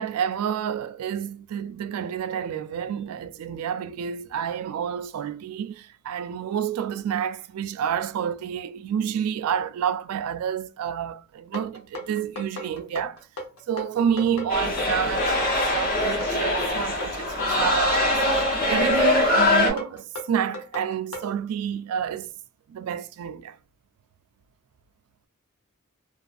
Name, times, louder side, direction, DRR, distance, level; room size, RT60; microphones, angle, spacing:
voice 1, 0.0-13.2 13.7-18.2 18.7-22.3 22.7-23.6, right 8 dB, 80° right, 0.3 m, -29 dB
sound 1, 11.5-21.3, left 1 dB, 85° left, 0.8 m, -36 dB
sound 2, 14.5-19.7, left 2 dB, 45° left, 0.9 m, -23 dB
2.4 x 2.4 x 2.4 m
head